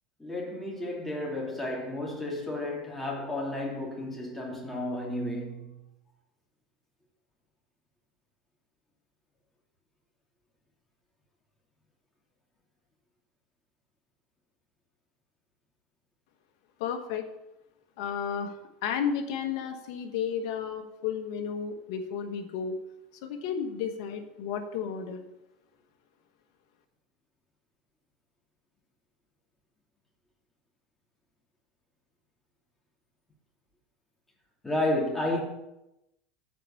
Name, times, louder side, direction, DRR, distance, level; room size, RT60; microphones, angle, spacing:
voice 1, 0.2-5.8 34.6-35.4, left 1 dB, 10° left, 2.6 m, -32 dB
voice 2, 16.8-17.2 18.0-22.8 23.2-25.2, left 7 dB, 70° left, 1.3 m, -33 dB
8.3 x 4.6 x 7.0 m
supercardioid pair, 120°, 3 cm